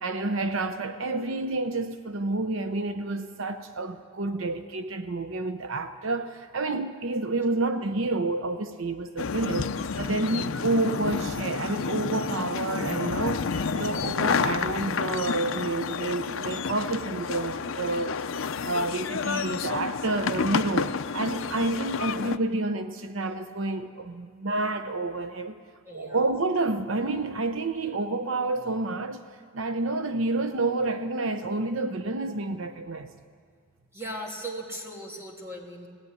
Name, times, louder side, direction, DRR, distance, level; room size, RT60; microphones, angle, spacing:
voice 1, 0.0-9.7 10.0-18.1 18.6-25.6 25.9-29.2 29.5-33.1, right 2 dB, 75° right, 0.8 m, -29 dB
sound 1, 9.2-22.4, left 5 dB, 75° left, 0.6 m, -30 dB
voice 2, 25.8-26.2 33.9-35.9, right 1 dB, 15° right, 2.9 m, -38 dB
19.5 x 16.0 x 9.8 m
head